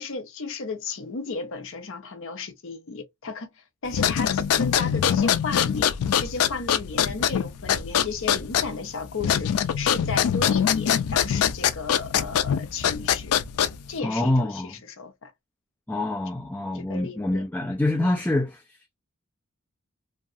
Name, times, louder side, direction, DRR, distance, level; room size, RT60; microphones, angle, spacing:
voice 1, 0.0-5.9 6.2-9.5 9.8-13.3 13.9-15.3 16.7-17.4, left 4 dB, 65° left, 0.7 m, -34 dB
sound 1, 3.9-14.0, left 8 dB, 90° left, 0.4 m, -24 dB
voice 2, 14.0-14.7 15.9-18.8, left 1 dB, 10° left, 0.4 m, -26 dB
2.7 x 2.3 x 2.4 m
head